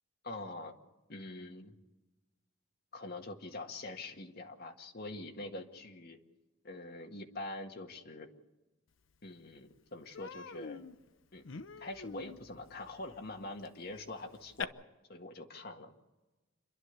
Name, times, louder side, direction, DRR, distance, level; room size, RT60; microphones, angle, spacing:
voice 1, 0.2-0.7 1.1-1.7 2.9-6.2 6.6-8.3 9.2-10.8 11.3-11.4 11.8-14.7 15.1-15.9, left 2 dB, 50° left, 3 dB, 1.7 m, -44 dB
Human voice, 9.1-9.2 9.6-9.8 10.1-14.6, left 5 dB, 65° left, 0.7 m, -46 dB
28.5 x 11.5 x 8.2 m, 1.1 s
head